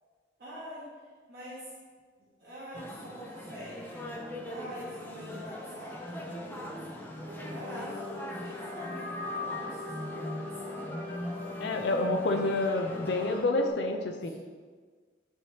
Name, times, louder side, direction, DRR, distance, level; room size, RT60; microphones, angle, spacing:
voice 1, 0.4-0.9 1.3-1.6 2.4-4.1 4.4-7.1 7.5-10.9 14.2-14.3, equal, 55° right, -10 dB, 1.4 m, -45 dB
sound 1, 2.7-13.4, left 1 dB, 10° left, 0.5 m, -41 dB
sound 2, 7.3-13.7, left 3 dB, 35° right, 1.1 m, -41 dB
voice 2, 11.6-14.3, left 2 dB, 70° left, 4 dB, 0.5 m, -28 dB
10.5 x 3.6 x 2.8 m, 1.5 s
head